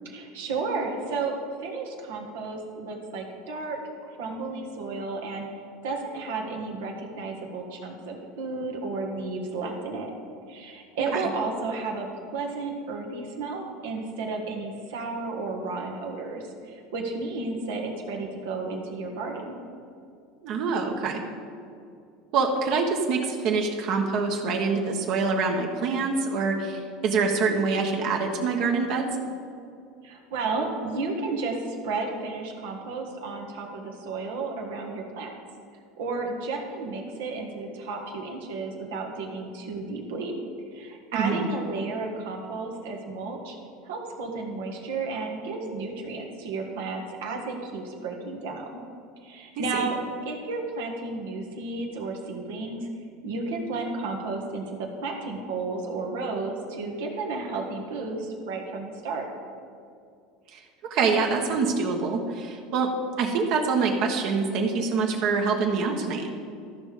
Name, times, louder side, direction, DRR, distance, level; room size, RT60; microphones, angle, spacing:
voice 1, 0.1-1.3 1.6-5.5 5.8-10.1 10.5-19.6 30.0-35.3 36.0-40.3 40.7-43.6 43.8-48.7 49.2-50.0 50.2-52.9 53.2-59.2, right 3 dB, 85° right, 1 dB, 1.5 m, -32 dB
voice 2, 20.4-21.2 22.3-29.1 41.1-41.5 49.7-49.9 60.5-60.6 60.9-62.9 63.2-66.3, right 4 dB, 60° right, 2 dB, 1.2 m, -25 dB
13.5 x 5.3 x 5.0 m, 2.4 s
supercardioid pair, 115°, 0 cm